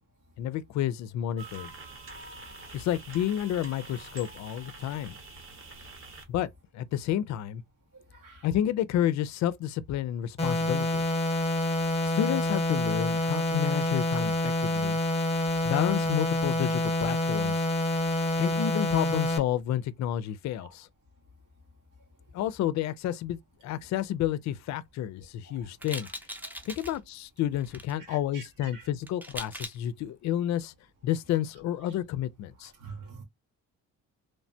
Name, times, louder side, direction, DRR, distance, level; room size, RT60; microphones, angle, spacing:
voice 1, 0.4-1.7 2.7-5.2 6.3-6.5 6.7-7.6 8.4-11.0 12.1-15.0 15.6-17.6 18.4-20.9 22.3-26.1 26.6-30.7 31.0-32.7, left 11 dB, 65° left, 0.4 m, -30 dB
sound 1, 1.4-6.2, right 3 dB, 45° right, 1.0 m, -46 dB
voice 2, 8.1-8.5 15.3-15.5 20.6-20.7 25.5-25.6 26.4-26.6 28.0-28.9 32.6-33.2, right 4 dB, 85° right, 1.4 m, -47 dB
sound 2, 10.4-19.4, left 1 dB, 20° left, 0.9 m, -27 dB
sound 3, 25.8-27.0 27.6-27.9 29.0-29.8, equal, 5° right, 0.7 m, -40 dB
3.2 x 2.1 x 2.6 m
cardioid pair, 90°, 30 cm